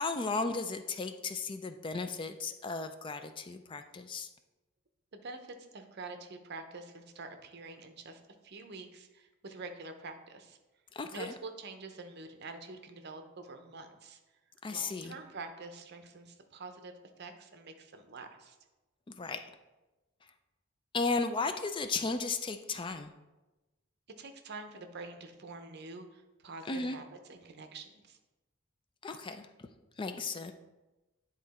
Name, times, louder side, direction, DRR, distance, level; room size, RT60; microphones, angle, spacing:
voice 1, 0.0-4.3 10.9-11.3 14.6-15.1 19.2-19.5 20.9-23.1 26.7-27.0 29.0-29.7 30.0-30.5, left 3 dB, 25° left, 8 dB, 0.3 m, -35 dB
voice 2, 5.1-10.6 11.1-14.2 14.7-18.6 24.2-28.2, right 3 dB, 55° right, 6 dB, 0.7 m, -46 dB
9.9 x 3.7 x 4.2 m, 1.1 s
head